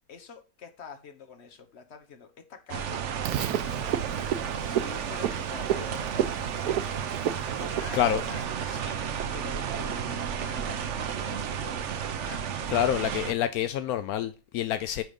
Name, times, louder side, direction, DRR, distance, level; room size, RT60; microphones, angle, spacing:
voice 1, 0.1-3.7 4.6-6.8 7.6-9.0 9.3-12.5, left 6 dB, 50° left, 1.4 m, -46 dB
sound 1, 2.7-13.3, right 7 dB, 60° right, 1.0 m, -32 dB
Frog, 3.2-8.4, right 11 dB, 90° right, 1.1 m, -32 dB
voice 2, 12.7-15.0, left 11 dB, 80° left, 1.0 m, -27 dB
9.4 x 3.8 x 5.1 m
omnidirectional pair, 1.5 m